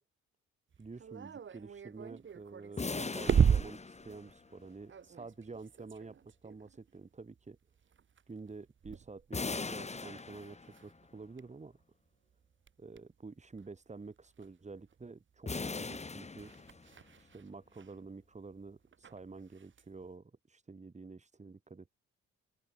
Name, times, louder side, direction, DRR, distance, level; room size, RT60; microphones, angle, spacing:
sound 1, 0.7-11.8 12.3-15.0 15.3-20.0, right 7 dB, 40° right, 1.4 m, -37 dB
voice 1, 0.8-6.2 6.4-7.6 8.3-11.8 12.8-16.5 17.3-21.9, right 4 dB, 25° right, 2.4 m, -49 dB
sound 2, 2.8-4.6 9.3-11.0 15.5-17.1, left 4 dB, 20° left, 2.0 m, -40 dB
open air
cardioid pair, 90°, 30 cm